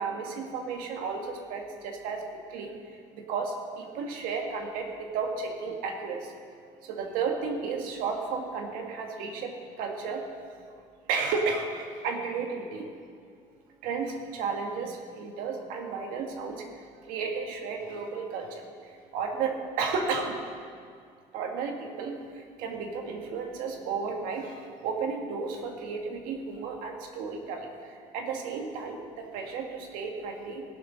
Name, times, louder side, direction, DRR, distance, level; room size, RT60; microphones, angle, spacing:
voice 1, 0.0-6.3 6.8-10.2 11.1-12.9 13.8-20.4 21.3-30.6, right 5 dB, 85° right, 3 dB, 1.6 m, -33 dB
16.5 x 6.5 x 6.2 m, 2.1 s
cardioid pair, 110°, 14 cm